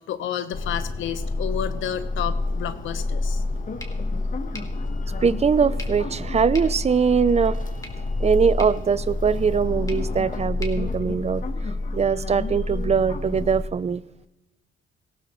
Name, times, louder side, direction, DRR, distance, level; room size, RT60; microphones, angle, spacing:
voice 1, 0.1-3.4 5.1-5.2, left 9 dB, 80° left, 11 dB, 1.1 m, -31 dB
sound 1, 0.5-13.7, left 2 dB, 40° left, 1.2 m, -28 dB
sound 2, 3.8-11.8, left 1 dB, 15° left, 2.1 m, -47 dB
voice 2, 5.2-7.6 8.2-11.4 11.9-14.0, right 6 dB, 35° right, 17 dB, 0.5 m, -21 dB
18.5 x 15.5 x 3.1 m, 1.0 s
cardioid pair, 90°, 20 cm